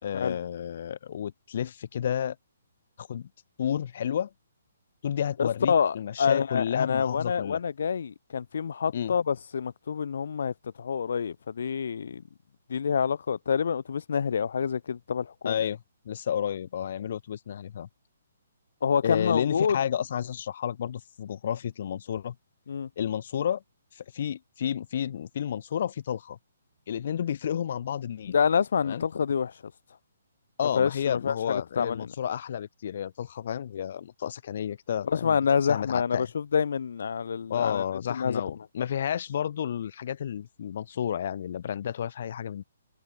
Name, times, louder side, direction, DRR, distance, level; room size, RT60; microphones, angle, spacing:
voice 1, 0.0-2.3 3.0-3.3 3.6-4.3 5.0-7.6 8.9-9.1 15.4-17.9 19.0-22.3 23.0-23.6 23.9-26.4 26.9-28.3 28.8-29.0 30.6-35.4 35.7-36.3 37.5-42.6, left 9 dB, 40° left, 1.6 m, -31 dB
voice 2, 5.4-12.2 12.7-15.6 18.8-19.8 22.7-22.9 28.3-29.5 30.8-32.1 35.0-37.8 38.1-38.4, left 6 dB, 55° left, 3.8 m, -27 dB
hypercardioid pair, 175°, 0 cm